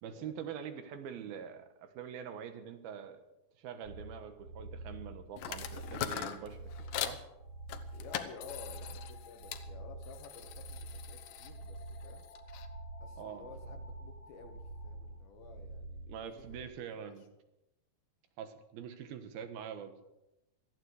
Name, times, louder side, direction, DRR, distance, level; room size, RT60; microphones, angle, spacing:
voice 1, 0.0-3.2 3.6-6.6 7.0-7.2 13.2-13.5 16.1-17.2 18.4-20.0, right 8 dB, 90° right, 8 dB, 3.2 m, -44 dB
sound 1, 3.8-16.6, right 2 dB, 65° right, 4.3 m, -47 dB
sound 2, 5.4-7.2 7.7-9.7 10.0-12.7, left 10 dB, 70° left, 2.3 m, -42 dB
sound 3, 7.4-15.2, left 3 dB, 50° left, 1.5 m, -58 dB
voice 2, 7.9-12.3 13.0-17.3, left 5 dB, 90° left, 5 dB, 3.7 m, -53 dB
18.0 x 14.0 x 4.9 m, 0.93 s
omnidirectional pair, 4.2 m